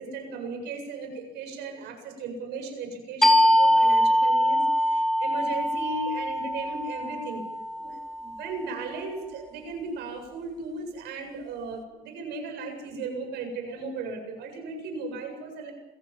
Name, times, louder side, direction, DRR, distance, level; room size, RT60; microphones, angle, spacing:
voice 1, 0.0-7.4 7.7-15.7, right 3 dB, 85° right, 4 dB, 8.0 m, -36 dB
sound 1, 3.2-8.5, equal, 5° left, 3.1 m, -23 dB
27.5 x 16.5 x 7.5 m, 1.0 s
cardioid pair, 110°, 17 cm